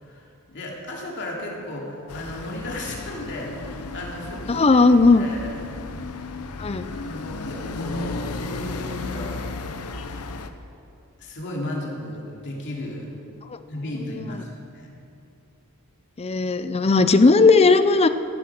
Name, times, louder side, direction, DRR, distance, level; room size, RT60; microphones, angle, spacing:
voice 1, 0.0-4.8 5.1-5.5 6.8-9.5 11.2-13.1 13.7-14.9, left 1 dB, 55° left, -2 dB, 2.8 m, -34 dB
sound 1, 2.1-10.5, left 3 dB, 85° left, 0.8 m, -34 dB
voice 2, 4.5-5.3 6.6-6.9 16.2-18.1, left 3 dB, 30° left, 11 dB, 0.5 m, -16 dB
15.5 x 10.5 x 6.0 m, 2.7 s
head